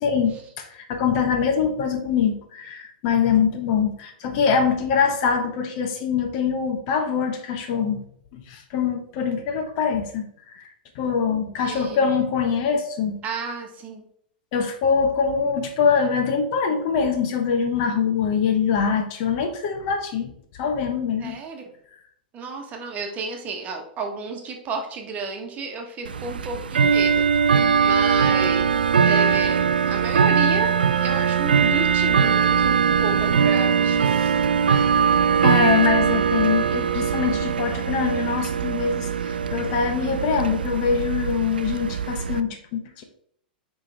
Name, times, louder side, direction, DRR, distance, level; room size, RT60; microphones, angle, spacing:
voice 1, 0.0-8.0 8.3-10.2 10.5-10.7 10.9-13.2 14.5-20.3 20.6-21.4 34.0-34.4 34.7-34.9 35.4-43.0, left 6 dB, 45° left, 5 dB, 1.1 m, -23 dB
voice 2, 11.3-12.1 13.2-14.0 21.2-21.6 22.3-27.3 27.8-34.3, right 4 dB, 30° right, 3 dB, 1.3 m, -32 dB
Bell / Tick-tock, 26.0-42.4, right 6 dB, 75° right, 0.4 m, -21 dB
8.7 x 3.5 x 3.5 m, 0.65 s
figure-of-eight pair, 100°, 5 cm